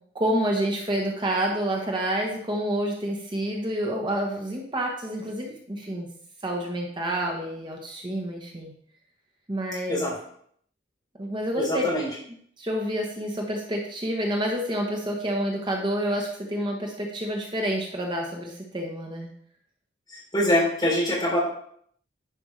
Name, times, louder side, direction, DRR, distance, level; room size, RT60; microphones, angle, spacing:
voice 1, 0.1-6.1 6.4-8.7 9.5-10.1 11.2-11.8 12.6-19.3, right 1 dB, 25° right, 0 dB, 0.9 m, -28 dB
voice 2, 11.6-12.1 20.1-21.4, left 1 dB, 20° left, -6 dB, 3.5 m, -24 dB
10.0 x 5.1 x 3.2 m, 0.65 s
head